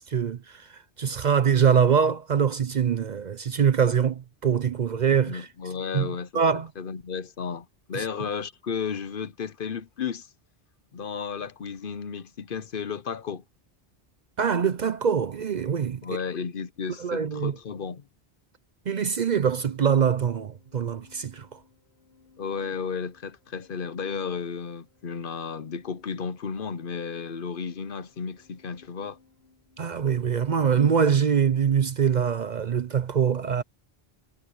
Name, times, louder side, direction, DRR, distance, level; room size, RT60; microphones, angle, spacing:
voice 1, 0.0-5.5 5.9-6.7 7.9-8.1 14.4-16.0 17.0-17.6 18.9-21.6 29.8-33.6, right 7 dB, 50° right, 0.7 m, -24 dB
voice 2, 5.2-6.4 6.8-10.3 10.9-13.4 16.0-18.0 22.4-29.2, left 6 dB, 60° left, 1.0 m, -33 dB
Organ, 19.3-30.0, left 4 dB, 75° left, 3.1 m, -59 dB
omnidirectional pair, 1.1 m